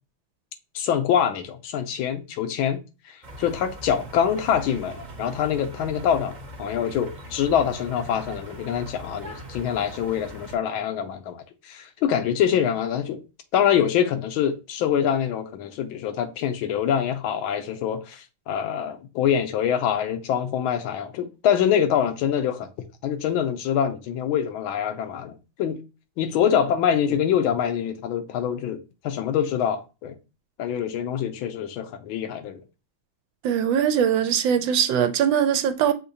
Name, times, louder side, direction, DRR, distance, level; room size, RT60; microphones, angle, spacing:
voice 1, 0.7-13.2 13.5-22.7 23.0-25.8 26.2-30.2 30.6-32.6, left 8 dB, 85° left, 1.5 m, -25 dB
sound 1, 3.2-10.6, right 1 dB, 35° right, 0.7 m, -40 dB
voice 2, 33.4-35.9, right 9 dB, 75° right, 1.3 m, -21 dB
6.5 x 2.9 x 2.7 m
omnidirectional pair, 2.2 m